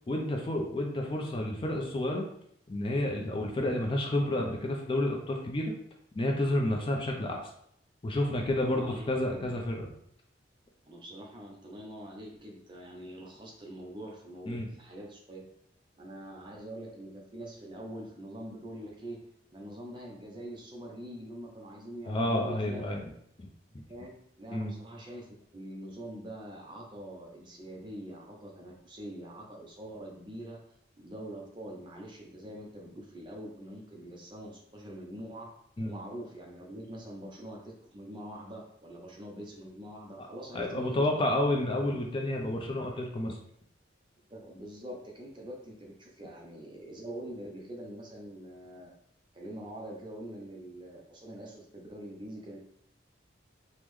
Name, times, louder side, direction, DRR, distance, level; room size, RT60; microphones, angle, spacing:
voice 1, 0.1-2.3 2.7-5.7 6.1-7.5 8.0-9.9 14.5-14.7 22.1-23.0 23.4-23.5 24.5-24.7 35.8-35.9 40.2-40.3 40.5-43.4, left 1 dB, 25° left, 1 dB, 0.3 m, -30 dB
voice 2, 8.7-9.6 10.8-15.4 16.0-19.2 19.5-22.9 23.9-30.6 31.0-35.5 35.8-41.2 44.3-48.9 49.3-52.6, right 1 dB, 25° right, -1 dB, 0.5 m, -44 dB
3.5 x 2.1 x 3.0 m, 0.70 s
head